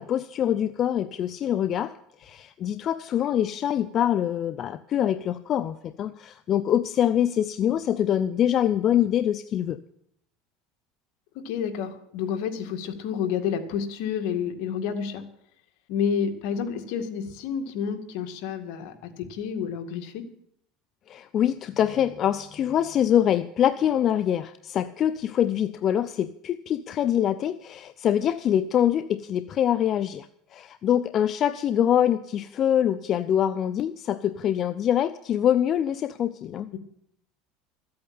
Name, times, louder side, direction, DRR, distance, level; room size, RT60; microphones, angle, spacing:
voice 1, 0.0-9.8 21.1-30.3 30.5-36.7, left 10 dB, 40° left, 12 dB, 0.5 m, -24 dB
voice 2, 11.4-15.2 15.9-20.3 36.7-36.8, left 7 dB, 70° left, 6 dB, 2.0 m, -30 dB
14.0 x 8.7 x 8.7 m, 0.71 s
supercardioid pair, 130°, 0 cm